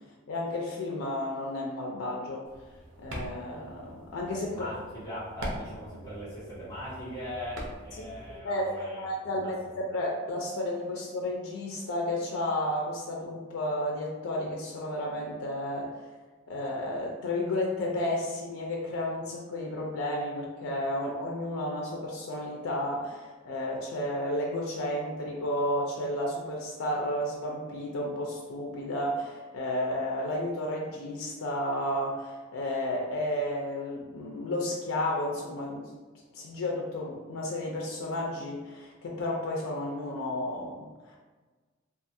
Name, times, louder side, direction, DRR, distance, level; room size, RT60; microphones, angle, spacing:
voice 1, 0.3-2.4 3.0-4.7 8.4-16.1 16.5-35.9 36.3-41.2, left 1 dB, 85° left, -2 dB, 0.4 m, -32 dB
sound 1, 2.5-8.4, right 1 dB, 75° right, 0.6 m, -43 dB
voice 2, 4.5-9.5, left 1 dB, 15° left, -12 dB, 1.2 m, -40 dB
2.5 x 2.3 x 2.6 m, 1.3 s
head